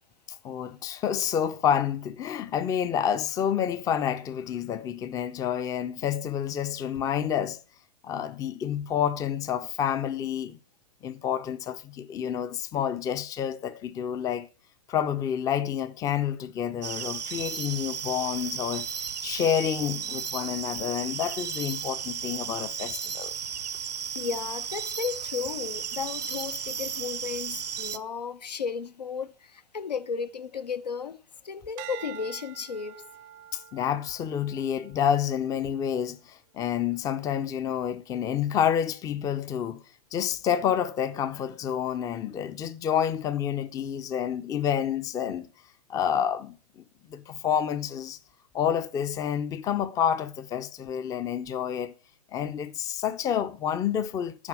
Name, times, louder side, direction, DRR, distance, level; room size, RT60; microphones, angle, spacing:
voice 1, 0.4-7.6 8.0-10.6 11.0-14.5 14.9-18.9 19.2-23.3 33.5-39.8 40.1-45.5 45.9-46.8 47.1-48.2 48.5-51.9 52.3-54.5, left 9 dB, 15° left, 0.5 m, -29 dB
sound 1, 16.8-28.0, right 7 dB, 80° right, 0.8 m, -34 dB
voice 2, 24.1-33.1, left 6 dB, 75° left, 0.9 m, -34 dB
sound 2, 31.8-36.2 36.8-37.2, right 12 dB, 35° right, 0.6 m, -47 dB
12.0 x 4.4 x 8.3 m
figure-of-eight pair, 115°, 21 cm